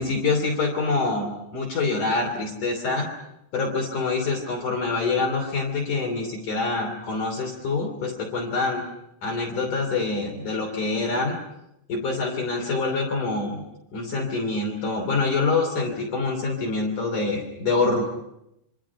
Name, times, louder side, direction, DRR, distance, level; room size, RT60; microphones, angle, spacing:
voice 1, 0.0-3.1 3.5-8.8 9.2-11.4 11.9-13.6 13.9-18.0, left 3 dB, 50° left, 1 dB, 4.3 m, -25 dB
27.5 x 25.5 x 5.8 m, 0.85 s
omnidirectional pair, 4.6 m